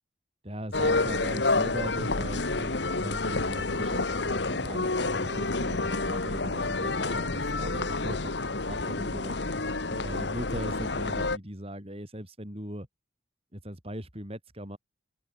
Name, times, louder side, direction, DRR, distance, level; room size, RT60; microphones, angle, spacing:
voice 1, 0.4-9.4 9.9-12.9 13.5-14.8, equal, 30° right, 7.2 m, -39 dB
sound 1, 0.7-11.4, left 3 dB, 65° left, 1.7 m, -29 dB
open air
head